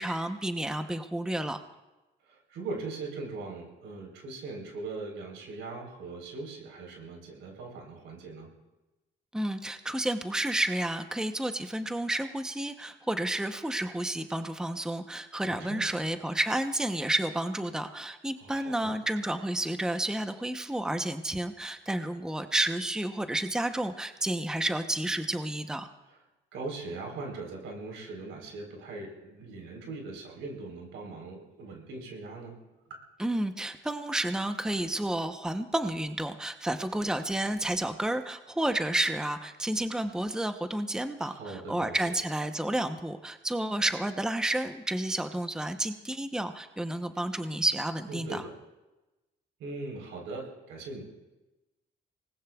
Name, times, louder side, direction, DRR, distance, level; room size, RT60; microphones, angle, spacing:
voice 1, 0.0-1.6 9.3-25.9 33.2-48.4, right 1 dB, 5° right, 8 dB, 0.8 m, -31 dB
voice 2, 2.2-8.5 15.4-15.9 18.4-18.9 26.1-26.2 26.5-32.6 41.2-42.2 48.1-48.5 49.6-51.0, right 3 dB, 90° right, 0 dB, 4.0 m, -40 dB
25.0 x 19.5 x 2.4 m, 1.1 s
cardioid pair, 90°, 20 cm